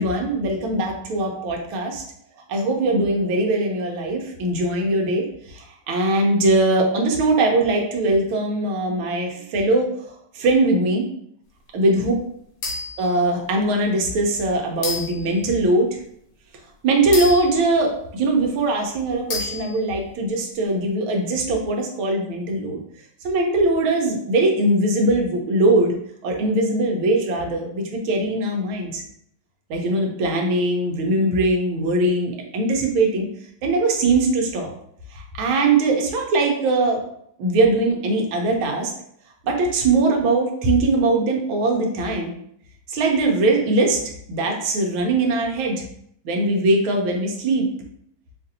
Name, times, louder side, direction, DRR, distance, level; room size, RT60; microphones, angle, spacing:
voice 1, 0.0-2.0 2.5-11.1 11.7-12.1 13.0-16.0 16.8-22.8 23.2-25.9 26.2-29.0 29.7-33.3 33.6-34.7 35.1-37.0 37.4-38.9 39.4-42.3 42.9-44.0 44.3-45.8 46.2-47.7, right 2 dB, 80° right, 1 dB, 1.6 m, -21 dB
sound 1, 12.6-13.1 13.8-13.9 14.8-15.3 17.1-18.3 19.3-20.0, left 3 dB, 65° left, 1.8 m, -30 dB
5.6 x 2.5 x 2.7 m, 0.70 s
omnidirectional pair, 2.2 m